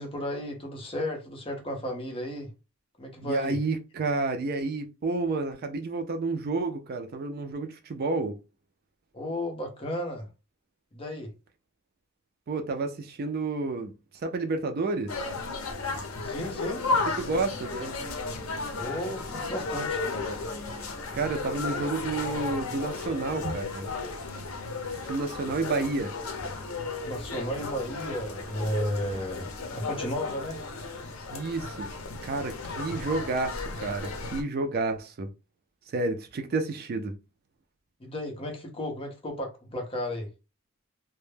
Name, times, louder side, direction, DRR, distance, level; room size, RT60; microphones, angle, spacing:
voice 1, 0.0-2.5 3.0-3.6 9.1-10.3 10.9-11.3 16.2-16.8 18.8-20.0 27.0-30.6 38.0-40.3, left 1 dB, 25° left, 0.6 m, -33 dB
voice 2, 3.2-8.3 12.5-15.3 17.2-18.0 21.1-23.9 25.0-26.1 31.3-31.9 32.2-35.3 35.9-37.2, right 3 dB, 45° right, 0.3 m, -30 dB
sound 1, 15.1-34.4, left 3 dB, 75° left, 0.5 m, -34 dB
2.1 x 2.0 x 3.2 m
head